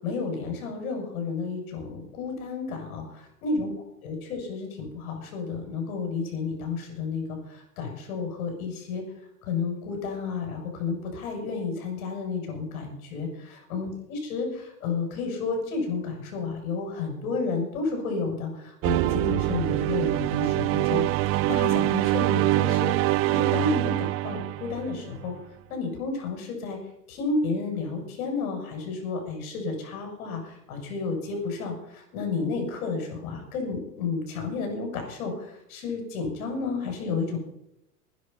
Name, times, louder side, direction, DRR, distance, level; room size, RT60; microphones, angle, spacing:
voice 1, 0.0-3.0 3.4-3.7 4.0-9.0 9.4-13.3 13.7-21.1 21.3-25.3 25.7-26.8 27.1-37.4, left 4 dB, 60° left, 3 dB, 7.5 m, -31 dB
sound 1, 18.8-25.3, right 17 dB, 30° right, 0.6 m, -24 dB
19.5 x 11.0 x 5.7 m, 0.79 s
hypercardioid pair, 95°, 47 cm